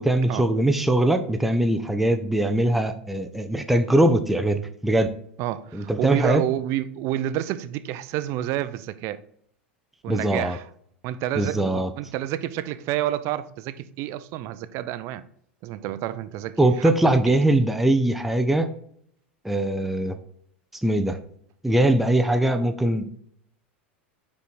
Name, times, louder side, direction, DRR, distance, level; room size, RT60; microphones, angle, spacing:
voice 1, 0.0-5.1 5.7-6.4 10.1-10.6 11.4-11.9 16.6-18.7 19.4-20.2 20.7-21.2 21.6-23.1, right 1 dB, 5° right, 0.5 m, -21 dB
voice 2, 5.4-9.2 10.0-10.7 11.0-15.2 15.6-16.9 17.3-17.4, right 13 dB, 50° right, 0.5 m, -29 dB
5.4 x 4.7 x 4.3 m
hypercardioid pair, 85°, 6 cm